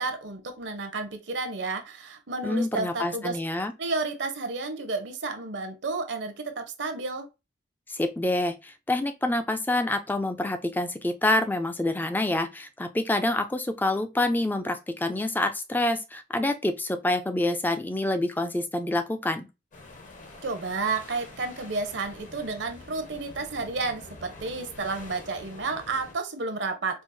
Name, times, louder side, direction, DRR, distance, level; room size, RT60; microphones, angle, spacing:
voice 1, 0.0-3.4 3.8-7.3 20.4-27.0, right 3 dB, 65° right, 0.7 m, -31 dB
voice 2, 2.4-3.7 7.9-19.5, left 2 dB, 10° left, 0.4 m, -27 dB
sound 1, 19.7-26.2, left 2 dB, 40° left, 0.8 m, -46 dB
4.5 x 2.0 x 2.6 m
head